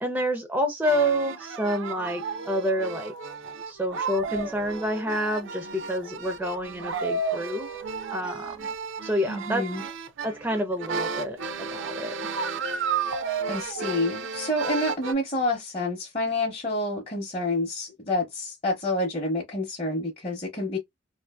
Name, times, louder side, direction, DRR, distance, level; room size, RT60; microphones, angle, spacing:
voice 1, 0.0-3.1 3.7-7.7 8.1-8.7 9.0-9.6 10.2-12.1, equal, 10° right, 0.4 m, -28 dB
sound 1, 0.8-15.1, right 4 dB, 70° right, 0.5 m, -33 dB
voice 2, 9.3-9.8 13.5-20.8, left 1 dB, 30° left, 0.7 m, -28 dB
2.5 x 2.5 x 2.2 m
head